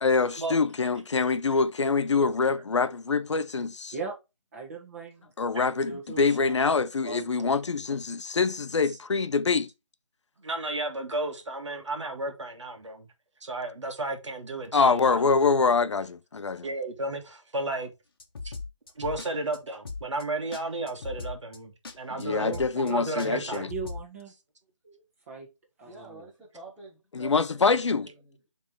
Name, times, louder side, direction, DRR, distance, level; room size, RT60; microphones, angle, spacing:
voice 1, 0.0-3.9 5.4-9.7 14.7-16.7 22.2-23.7 27.1-28.1, left 4 dB, 65° left, 0.7 m, -25 dB
voice 2, 4.5-5.3 5.9-6.6 7.0-7.6 22.3-24.3 24.8-25.0 25.3-25.5 25.8-26.3, right 4 dB, 30° right, 2.0 m, -39 dB
voice 3, 10.4-13.1 13.4-15.2 16.6-17.9 18.4-18.5 19.0-23.7, right 2 dB, 65° right, 1.7 m, -33 dB
sound 1, 18.2-19.3 19.5-19.6 19.9-20.2 20.5-20.6 20.9-21.6 21.8-22.0 22.2-22.3 22.5-22.9 23.2-24.0, left 4 dB, 45° left, 1.0 m, -38 dB
voice 4, 25.8-28.5, right 3 dB, ahead, 0.4 m, -49 dB
7.2 x 3.6 x 4.6 m
figure-of-eight pair, 165°, 16 cm